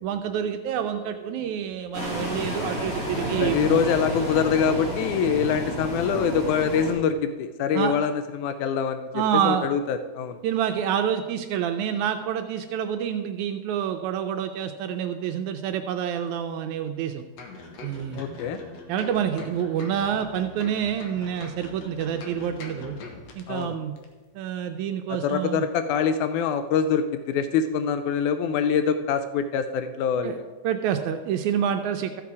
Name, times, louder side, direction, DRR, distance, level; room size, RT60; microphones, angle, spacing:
voice 1, 0.0-3.8 7.7-7.9 9.1-9.7 10.4-17.2 17.8-18.2 18.9-23.0 23.4-23.9 24.4-25.7 30.2-30.4 30.6-32.2, right 9 dB, 80° right, 6 dB, 2.0 m, -27 dB
sound 1, 1.9-6.9, equal, 30° left, 2.5 m, -30 dB
voice 2, 3.4-9.1 9.4-10.4 18.1-18.6 23.5-23.8 25.1-30.5, left 7 dB, 85° left, 10 dB, 2.0 m, -24 dB
sound 2, 17.4-23.6 24.0-24.1, left 3 dB, 65° left, 2.3 m, -42 dB
13.5 x 7.1 x 4.7 m, 1.3 s
omnidirectional pair, 3.4 m